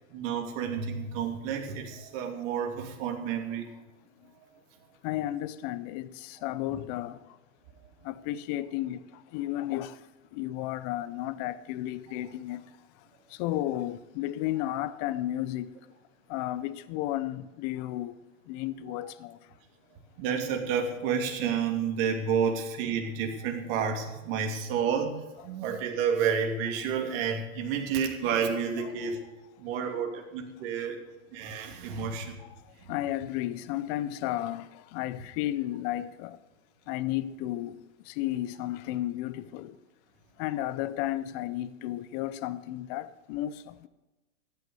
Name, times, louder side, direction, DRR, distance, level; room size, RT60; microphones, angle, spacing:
voice 1, 0.1-3.7 20.2-29.2 29.6-31.0 31.3-32.4, right 7 dB, 40° right, 3.0 m, -30 dB
voice 2, 5.0-7.4 8.0-12.6 13.3-15.7 16.3-18.2 18.5-19.5 28.8-29.1 30.8-30.9 31.9-32.2 32.6-36.4 36.9-39.8 40.4-43.9, left 14 dB, 30° left, 0.6 m, -33 dB
15.0 x 9.2 x 6.7 m
hypercardioid pair, 140°, 43 cm